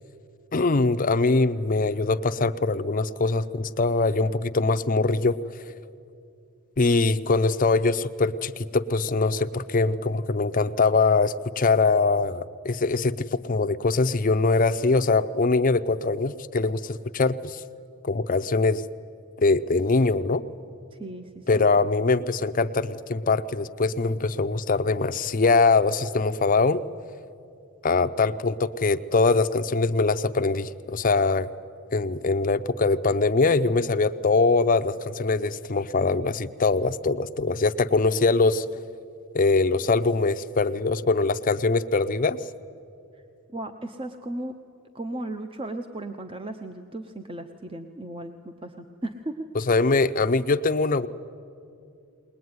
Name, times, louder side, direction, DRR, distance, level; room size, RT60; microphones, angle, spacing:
voice 1, 0.5-5.4 6.8-17.6 18.0-18.8 19.4-20.4 21.5-26.8 27.8-31.5 31.9-38.7 39.3-42.4 49.5-51.1, left 3 dB, 40° left, 11 dB, 0.6 m, -22 dB
voice 2, 20.9-21.8 43.5-44.6 44.9-49.5, right 1 dB, 25° right, 7 dB, 0.7 m, -36 dB
21.0 x 20.0 x 9.5 m, 2.4 s
head